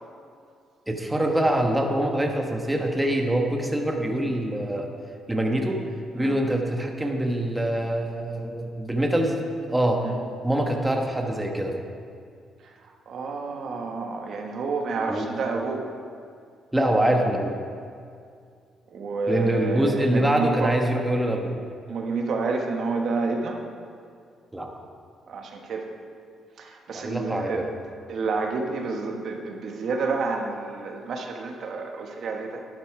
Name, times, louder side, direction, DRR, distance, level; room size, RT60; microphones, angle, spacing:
voice 1, 0.9-4.9 5.3-5.8 6.1-9.4 9.7-10.1 10.4-11.8 15.1-15.3 16.7-17.6 19.3-21.5 24.5-24.7 26.9-27.7, right 1 dB, 10° right, 2 dB, 1.2 m, -24 dB
voice 2, 12.6-15.8 18.9-20.7 21.9-23.6 25.3-25.9 26.6-27.6 28.1-32.7, right 4 dB, 65° right, 2 dB, 1.3 m, -29 dB
11.5 x 9.3 x 4.8 m, 2.3 s
cardioid pair, 90°, 0 cm